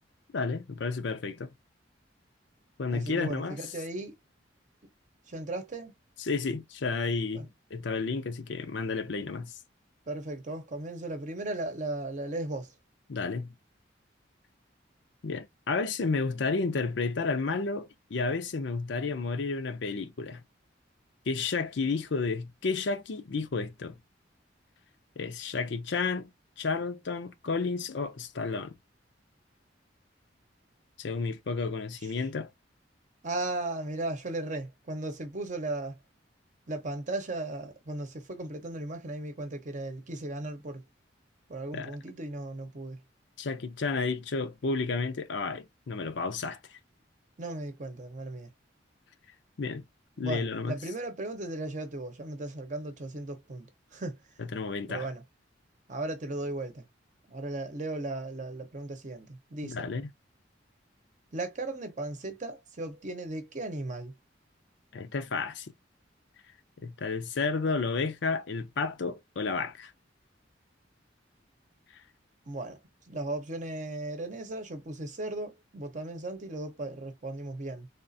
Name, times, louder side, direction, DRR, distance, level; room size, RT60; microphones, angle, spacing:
voice 1, 0.3-1.5 2.8-3.6 6.2-9.5 13.1-13.5 15.2-20.4 21.3-24.0 25.2-26.3 26.6-28.8 31.0-32.5 41.7-41.9 43.4-46.8 49.6-49.8 50.2-50.8 54.4-55.1 59.6-60.1 64.9-65.7 66.8-69.9 71.9-72.0, left 4 dB, 70° left, 0.5 m, -31 dB
voice 2, 2.9-4.2 5.3-5.9 7.3-7.5 10.1-12.7 33.2-36.0 36.7-40.8 41.5-43.0 47.4-48.5 50.2-54.2 54.9-55.2 55.9-56.8 57.3-59.9 61.3-64.1 72.5-72.8 73.1-77.9, right 2 dB, 40° right, 0.8 m, -36 dB
3.6 x 2.4 x 2.6 m
head